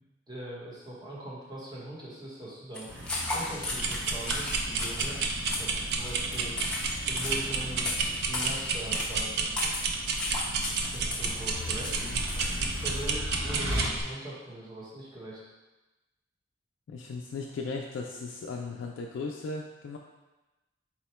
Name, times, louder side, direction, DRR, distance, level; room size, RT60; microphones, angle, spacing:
voice 1, 0.3-2.9 3.3-5.2 5.6-6.6 7.1-9.7 10.8-12.1 12.3-15.4, right 1 dB, 20° right, -6 dB, 0.9 m, -41 dB
sound 1, 2.7-12.8, left 2 dB, 5° left, 0.5 m, -36 dB
sound 2, 2.9-13.9, equal, 85° right, 1.0 m, -39 dB
voice 2, 3.3-3.6 5.7-5.9 12.0-12.2 16.9-20.0, left 3 dB, 80° left, 0 dB, 0.3 m, -37 dB
sound 3, 3.7-14.0, right 4 dB, 55° right, 0.4 m, -32 dB
4.2 x 2.1 x 4.2 m, 1.1 s
head